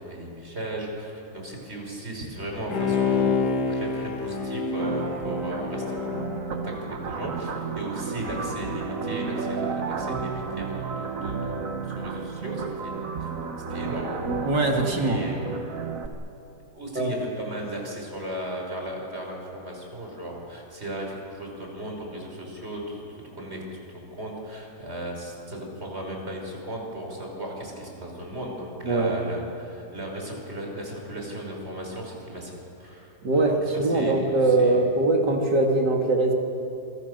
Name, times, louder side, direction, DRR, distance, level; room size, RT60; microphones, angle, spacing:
voice 1, 0.0-13.3 13.7-14.2 14.9-15.4 16.7-34.8, right 1 dB, 35° right, 0 dB, 5.7 m, -36 dB
Bowed string instrument, 2.7-7.3 7.7-7.8, left 4 dB, 75° left, 2.5 m, -28 dB
sound 1, 4.8-16.1, right 5 dB, 55° right, 1.6 m, -32 dB
voice 2, 14.4-15.2 16.9-17.1 28.8-29.2 33.2-36.3, right 2 dB, 85° right, 2 dB, 3.0 m, -22 dB
28.0 x 23.5 x 6.7 m, 2.9 s
omnidirectional pair, 1.8 m